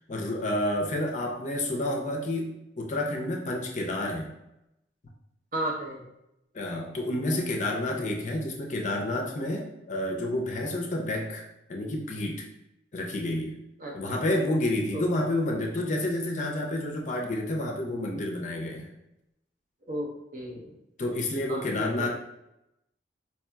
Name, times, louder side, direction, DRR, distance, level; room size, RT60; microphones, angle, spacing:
voice 1, 0.1-4.3 6.5-11.4 11.7-12.5 12.9-13.6 13.9-18.9 21.0-22.1, left 1 dB, 45° left, 1 dB, 0.5 m, -29 dB
voice 2, 5.5-6.0 13.8-14.0 14.9-15.1 19.9-20.8 21.5-22.1, right 1 dB, 50° right, -1 dB, 0.7 m, -34 dB
4.6 x 2.7 x 2.3 m, 0.85 s
head